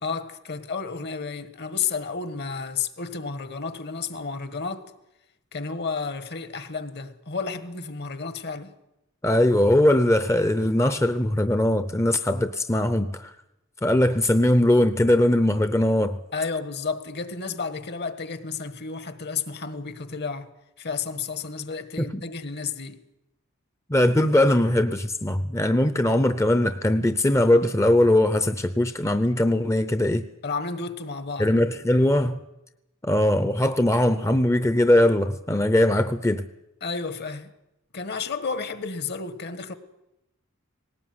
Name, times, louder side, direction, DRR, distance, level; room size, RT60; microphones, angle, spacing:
voice 1, 0.0-4.9 5.5-8.7 16.3-20.5 20.8-23.1 30.4-31.5 36.8-37.5 37.9-39.7, left 5 dB, 50° left, 1.5 m, -32 dB
voice 2, 9.2-13.3 13.8-16.2 22.0-22.2 23.9-30.2 31.4-32.4 33.0-36.4, left 1 dB, 15° left, 0.7 m, -20 dB
19.0 x 18.5 x 9.5 m
head